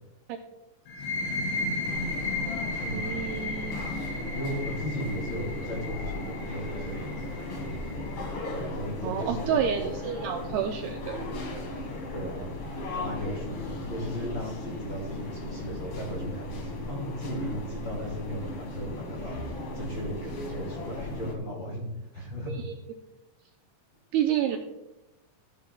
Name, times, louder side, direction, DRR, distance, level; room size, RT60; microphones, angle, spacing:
sound 1, 0.9-8.3, left 2 dB, 85° left, 4.7 m, -34 dB
sound 2, 1.8-21.3, left 2 dB, 60° left, 1.4 m, -37 dB
voice 1, 2.9-4.0 9.0-11.2 22.5-22.7 24.1-24.6, right 9 dB, 85° right, 3 dB, 2.3 m, -29 dB
voice 2, 4.3-7.5 8.5-9.8 12.1-19.4 19.7-21.8 22.1-22.5, equal, 35° left, -2 dB, 2.5 m, -36 dB
15.5 x 10.5 x 2.3 m, 0.96 s
omnidirectional pair, 5.1 m